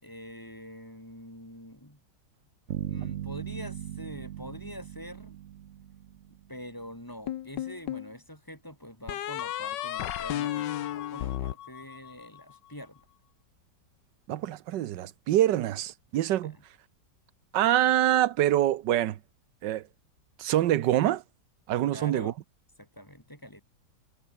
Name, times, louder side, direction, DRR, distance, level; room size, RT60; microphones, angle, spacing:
voice 1, 0.0-2.0 2.9-5.4 6.5-13.1 16.4-16.6 21.8-22.4 22.8-23.6, equal, 10° left, 5.1 m, -45 dB
sound 1, 2.7-6.7, right 11 dB, 60° right, 0.8 m, -38 dB
sound 2, 7.3-8.1 9.1-12.4, left 12 dB, 80° left, 1.5 m, -33 dB
voice 2, 14.3-16.6 17.5-19.2 19.6-19.8 20.4-21.2 21.7-22.3, right 13 dB, 80° right, 1.5 m, -25 dB
omnidirectional pair, 1.9 m